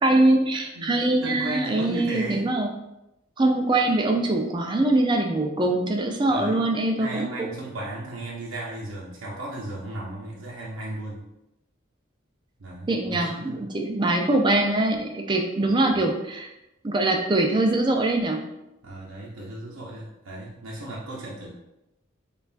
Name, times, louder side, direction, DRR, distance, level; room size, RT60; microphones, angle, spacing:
voice 1, 0.0-2.7 3.4-7.5 12.9-16.5 16.8-18.4, right 2 dB, 20° right, 3 dB, 0.4 m, -23 dB
voice 2, 0.7-2.5 6.3-6.7 7.0-11.3 12.6-13.6 15.7-16.0 18.8-21.5, right 1 dB, 85° right, -5 dB, 0.6 m, -36 dB
5.3 x 2.3 x 2.5 m, 0.89 s
head